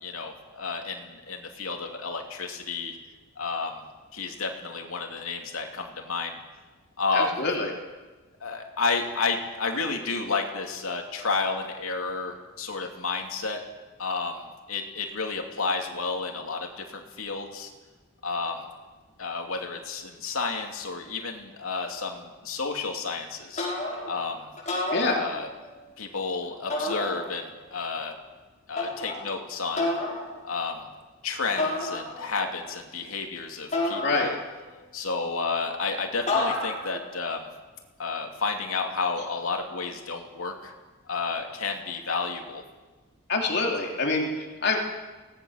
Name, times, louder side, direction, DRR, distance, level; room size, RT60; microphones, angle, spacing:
voice 1, 0.0-3.0 3.4-3.8 4.1-6.4 7.0-7.5 8.4-13.6 14.0-17.7 18.2-18.7 19.2-23.7 24.1-24.5 25.1-25.5 26.0-28.1 28.7-29.9 30.4-30.8 31.2-34.4 34.9-37.5 38.0-40.7 41.1-42.6, left 4 dB, 90° left, 2 dB, 2.9 m, -31 dB
voice 2, 7.1-7.7 24.9-25.2 34.0-34.3 43.3-44.8, left 3 dB, 55° left, 0 dB, 3.3 m, -26 dB
sound 1, 23.6-24.2 24.6-25.7 26.7-27.6 28.8-29.3 29.8-30.3 31.6-32.4 33.7-34.7 36.3-37.0, left 2 dB, 35° left, 6.3 m, -30 dB
24.5 x 18.5 x 6.6 m, 1.2 s
head